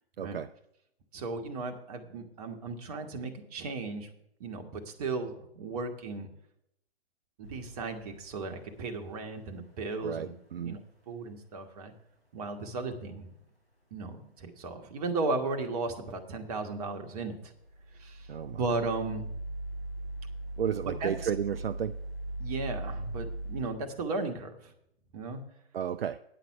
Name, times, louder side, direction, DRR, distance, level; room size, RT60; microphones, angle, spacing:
voice 1, 0.2-0.5 10.0-10.8 18.3-18.6 20.6-22.0 25.7-26.2, right 8 dB, 70° right, 0.4 m, -33 dB
voice 2, 1.1-4.1 4.4-6.3 7.4-10.8 11.1-11.9 12.3-13.3 13.9-17.5 18.0-19.3 20.8-21.3 22.4-24.7 25.1-25.4, right 3 dB, 40° right, 1.3 m, -35 dB
sound 1, 7.4-9.0 17.6-23.7, right 1 dB, 80° left, 3.5 m, -39 dB
9.9 x 6.0 x 7.2 m
figure-of-eight pair, 125°, 31 cm